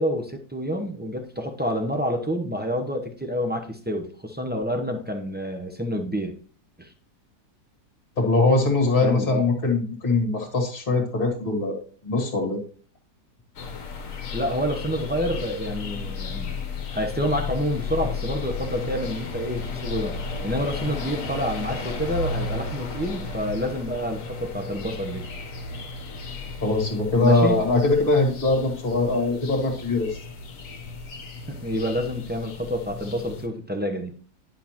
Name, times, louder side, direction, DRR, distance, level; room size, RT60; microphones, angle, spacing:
voice 1, 0.0-6.3 6.8-6.9 9.0-9.5 14.3-16.6 16.9-20.2 20.4-25.3 27.2-27.6 31.5-34.2, equal, 15° right, 3 dB, 0.4 m, -28 dB
voice 2, 8.2-11.8 12.0-12.6 26.6-30.2, left 3 dB, 35° left, 2 dB, 1.8 m, -22 dB
sound 1, 13.5-33.5, left 4 dB, 55° left, 1.4 m, -34 dB
10.5 x 5.7 x 2.9 m, 0.43 s
omnidirectional pair, 1.8 m